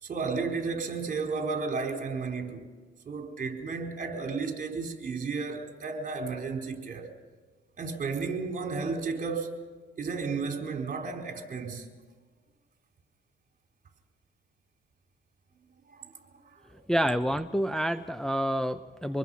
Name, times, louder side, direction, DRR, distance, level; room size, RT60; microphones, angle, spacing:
voice 1, 0.0-2.6 3.0-7.1 7.8-9.6 10.0-11.9 15.9-16.1 16.5-16.6, right 4 dB, 45° right, 4.2 m, -33 dB
voice 2, 16.9-19.2, equal, 5° left, 0.6 m, -28 dB
25.5 x 21.0 x 5.6 m
cardioid pair, 90°, 20 cm